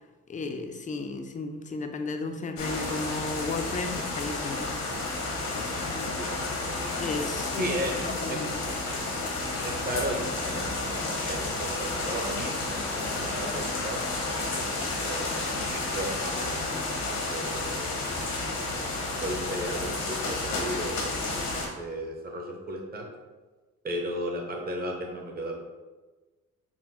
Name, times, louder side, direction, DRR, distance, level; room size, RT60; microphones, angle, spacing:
voice 1, 0.3-4.7 5.5-6.2 7.0-7.7 8.0-8.5, left 3 dB, 25° left, 6 dB, 0.4 m, -34 dB
sound 1, 2.6-21.7, left 2 dB, 90° left, 1.1 m, -31 dB
voice 2, 6.2-6.6 7.6-8.4 9.6-14.1 15.0-15.4 15.6-17.9 18.7-18.8 19.1-21.1 21.7-23.0 23.8-25.5, right 1 dB, 30° right, 0 dB, 0.9 m, -35 dB
4.2 x 2.1 x 4.2 m, 1.3 s
cardioid pair, 90°, 30 cm